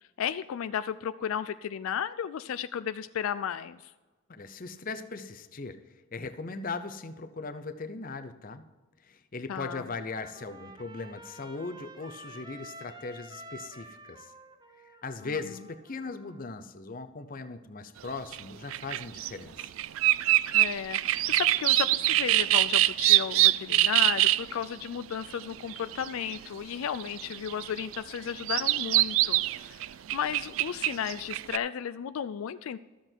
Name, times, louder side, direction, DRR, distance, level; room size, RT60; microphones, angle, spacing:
voice 1, 0.2-3.9 9.5-9.9 15.2-15.3 20.5-29.8 30.1-32.8, left 8 dB, 80° left, 13 dB, 0.3 m, -34 dB
voice 2, 4.3-5.8 6.1-8.7 9.0-14.3 15.0-19.7, left 3 dB, 40° left, 9 dB, 0.7 m, -39 dB
Trumpet, 9.8-16.4, right 1 dB, 20° right, 0.7 m, -49 dB
sound 1, 18.3-18.4 18.7-19.3 19.6-24.6 25.1-26.4 26.9-31.6, right 16 dB, 70° right, 0.3 m, -24 dB
13.0 x 7.8 x 4.5 m, 1.2 s
head